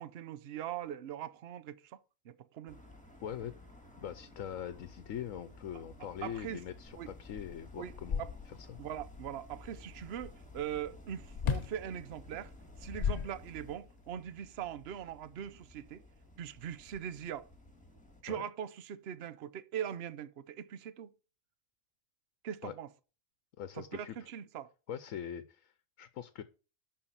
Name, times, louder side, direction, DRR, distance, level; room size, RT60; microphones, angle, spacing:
voice 1, 0.0-2.0 2.2-2.8 6.2-6.6 7.0-7.1 7.8-7.9 8.2-8.3 8.8-12.5 12.8-16.0 16.4-17.5 18.2-21.1 22.4-22.9 23.7-24.7, right 9 dB, 55° right, 0.9 m, -41 dB
sound 1, 2.7-18.2, left 2 dB, 5° left, 2.2 m, -54 dB
voice 2, 3.2-3.5 4.0-8.8 18.3-18.4 22.6-22.7 23.6-24.2 24.9-25.7 26.0-26.4, left 9 dB, 85° left, 1.2 m, -42 dB
sound 2, 6.9-7.0 7.3-8.8 11.4-11.8 12.7-13.9, left 7 dB, 45° left, 0.6 m, -35 dB
11.5 x 4.7 x 7.3 m
omnidirectional pair, 1.4 m